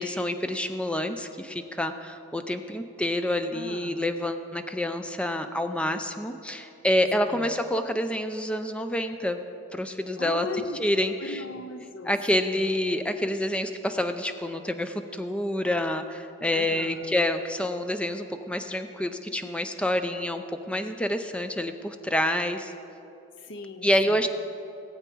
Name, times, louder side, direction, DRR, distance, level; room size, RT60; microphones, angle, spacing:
voice 1, 0.0-9.4 9.7-10.5 10.8-11.4 12.1-22.7 23.8-24.3, left 1 dB, 5° left, 8 dB, 0.5 m, -28 dB
voice 2, 3.5-4.1 7.3-7.5 10.2-10.8 11.2-12.6 16.5-17.2 23.4-24.3, left 3 dB, 65° left, 9 dB, 0.7 m, -38 dB
18.0 x 8.2 x 4.6 m, 2.8 s
head